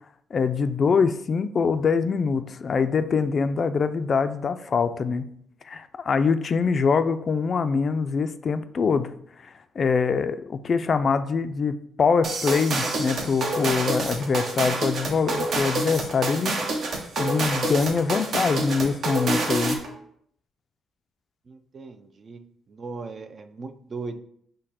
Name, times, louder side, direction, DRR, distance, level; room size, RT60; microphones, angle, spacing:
voice 1, 0.3-5.2 5.7-9.1 9.4-16.6 17.2-19.8, left 5 dB, 45° left, 11 dB, 0.3 m, -24 dB
sound 1, 12.2-19.9, right 2 dB, 60° right, 0.8 m, -27 dB
voice 2, 21.5-22.4 22.7-24.2, right 4 dB, 40° right, 8 dB, 0.4 m, -38 dB
5.1 x 2.1 x 4.2 m, 0.66 s
cardioid pair, 90°, 0 cm